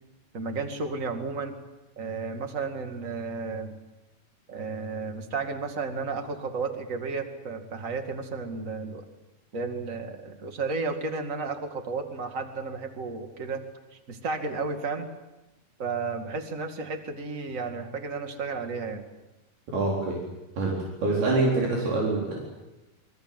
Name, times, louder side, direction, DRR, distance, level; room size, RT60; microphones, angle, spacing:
voice 1, 0.3-1.5 2.0-3.7 4.5-9.0 9.5-13.6 13.9-15.1 15.8-19.0 21.2-21.4, right 4 dB, 25° right, 6 dB, 1.9 m, -33 dB
voice 2, 19.7-20.2 20.6-22.4, right 2 dB, 85° right, -3 dB, 6.1 m, -25 dB
26.5 x 23.0 x 7.9 m, 1.0 s
omnidirectional pair, 4.4 m